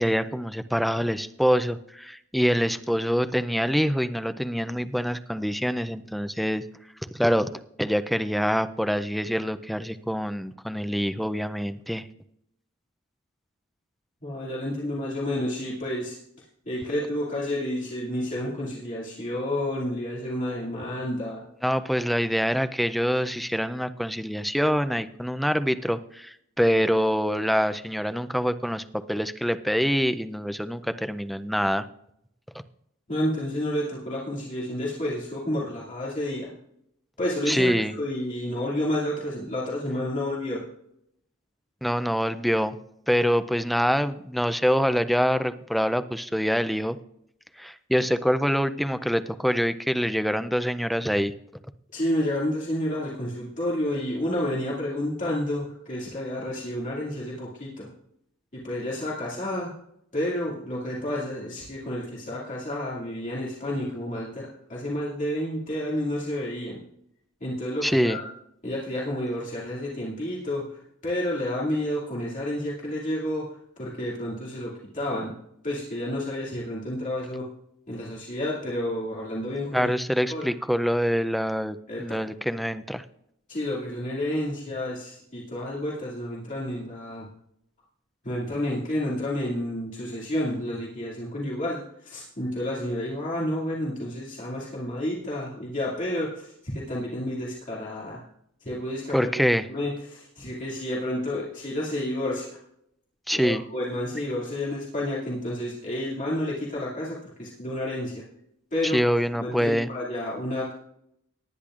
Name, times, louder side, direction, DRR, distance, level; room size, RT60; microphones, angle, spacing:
voice 1, 0.0-6.6 7.1-7.5 7.8-12.0 21.6-31.8 37.5-37.9 41.8-42.8 43.1-47.0 47.6-51.3 67.8-68.2 79.7-83.0 99.1-99.6 103.3-103.6 108.8-109.9, equal, ahead, 11 dB, 0.4 m, -25 dB
voice 2, 14.2-16.2 16.6-21.4 33.1-36.5 37.2-37.7 38.0-40.6 51.9-57.9 58.5-59.7 60.1-66.8 67.4-68.3 68.6-75.3 75.6-77.5 77.9-79.9 80.3-80.5 81.9-82.2 83.5-87.3 88.2-98.2 98.6-99.3 99.7-102.6 103.3-108.2 108.7-109.0 109.3-110.7, left 1 dB, 40° left, -6 dB, 2.3 m, -30 dB
18.5 x 10.0 x 2.5 m, 0.74 s
head